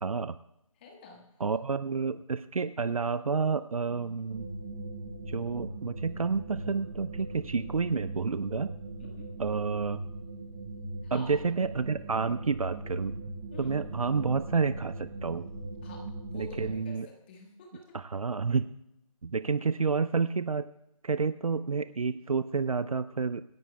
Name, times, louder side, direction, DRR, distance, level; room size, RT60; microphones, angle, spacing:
voice 1, 0.0-0.4 1.4-4.5 5.3-8.8 9.4-10.0 11.1-13.1 13.6-15.5 16.3-17.1 17.9-18.7 19.2-20.7 21.0-23.4, right 5 dB, 75° right, 13 dB, 0.5 m, -30 dB
voice 2, 0.8-1.2 3.9-4.3 9.0-9.3 11.0-11.4 13.5-13.8 15.8-17.8 19.4-19.5, left 4 dB, 15° left, 1 dB, 1.6 m, -49 dB
sound 1, 4.3-16.8, right 2 dB, 25° right, 4.9 m, -40 dB
26.0 x 11.0 x 2.3 m, 0.81 s
figure-of-eight pair, 160°, 18 cm